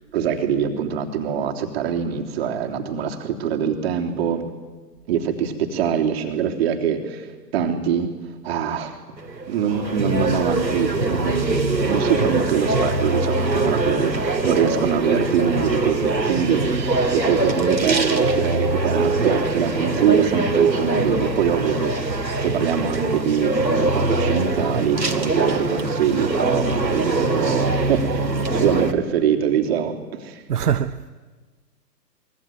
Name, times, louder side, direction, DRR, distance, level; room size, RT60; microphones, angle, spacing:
voice 1, 0.1-4.5 5.1-8.1 8.4-9.0 9.5-30.4, right 8 dB, 40° right, 3.3 m, -24 dB
sound 1, 9.2-28.9, right 3 dB, 85° right, 2.7 m, -22 dB
voice 2, 30.5-31.1, right 8 dB, 65° right, 1.0 m, -22 dB
25.0 x 22.5 x 9.3 m
figure-of-eight pair, 120°, 50 cm